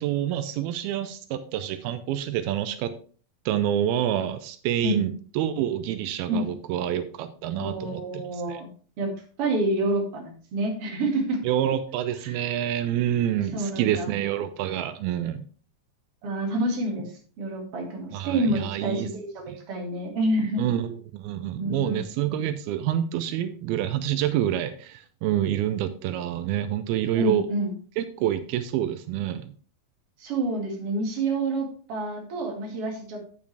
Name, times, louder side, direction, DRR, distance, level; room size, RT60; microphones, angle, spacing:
voice 1, 0.0-2.9 3.5-8.2 8.5-8.6 11.4-15.5 18.1-19.1 19.5-19.6 20.6-27.5 28.0-29.5, right 11 dB, 85° right, 11 dB, 2.5 m, -27 dB
voice 2, 7.5-8.7 9.0-9.1 9.4-11.4 12.2-12.7 13.4-14.2 16.2-17.1 17.4-20.6 21.6-22.0 27.1-27.7 30.2-33.2, right 2 dB, 45° right, 1 dB, 2.7 m, -28 dB
8.9 x 8.4 x 3.3 m, 0.41 s
omnidirectional pair, 4.3 m